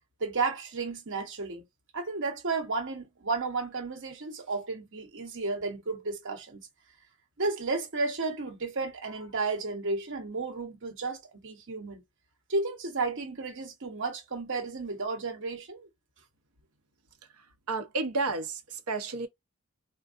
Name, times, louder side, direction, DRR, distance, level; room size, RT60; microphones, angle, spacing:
voice 1, 0.2-1.6 1.9-6.7 7.4-12.0 12.5-15.9, right 3 dB, 60° right, 1.1 m, -33 dB
voice 2, 17.7-19.3, right 3 dB, 85° right, 0.8 m, -31 dB
3.5 x 2.1 x 2.4 m
head